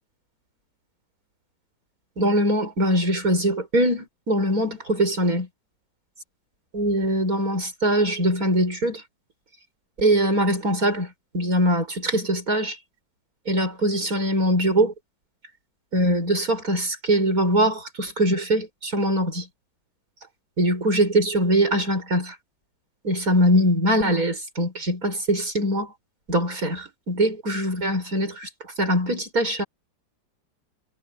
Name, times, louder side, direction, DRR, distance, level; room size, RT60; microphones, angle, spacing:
voice 1, 2.2-5.5 6.7-9.0 10.0-12.8 13.5-14.9 15.9-19.5 20.6-22.4 23.0-25.9 26.3-28.5 28.8-29.6, right 1 dB, 50° right, 7.1 m, -22 dB
omnidirectional pair, 2.0 m